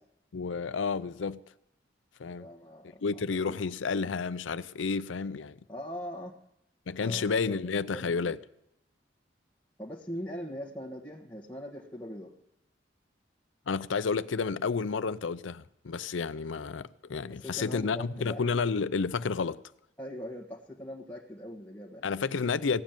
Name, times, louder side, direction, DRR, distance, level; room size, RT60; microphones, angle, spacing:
voice 1, 0.3-1.4 2.2-2.5 3.0-5.6 6.9-8.4 13.7-19.6 22.0-22.8, left 5 dB, 90° left, 0.5 m, -31 dB
voice 2, 2.4-3.6 5.7-6.4 7.0-7.6 7.9-8.3 9.8-12.3 17.3-18.4 20.0-22.1, equal, 10° left, 1.3 m, -41 dB
16.5 x 7.4 x 9.0 m
head